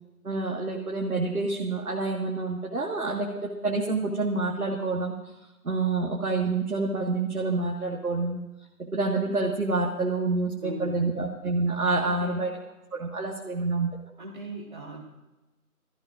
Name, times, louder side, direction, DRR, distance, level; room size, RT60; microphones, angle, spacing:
voice 1, 0.2-5.2 5.6-8.4 8.8-12.5 12.9-13.9, right 3 dB, 70° right, -1 dB, 1.8 m, -27 dB
voice 2, 10.6-11.2 12.0-12.5 14.2-15.0, right 1 dB, 30° right, -7 dB, 1.8 m, -39 dB
22.0 x 14.0 x 2.6 m, 1.0 s
figure-of-eight pair, 170°, 45 cm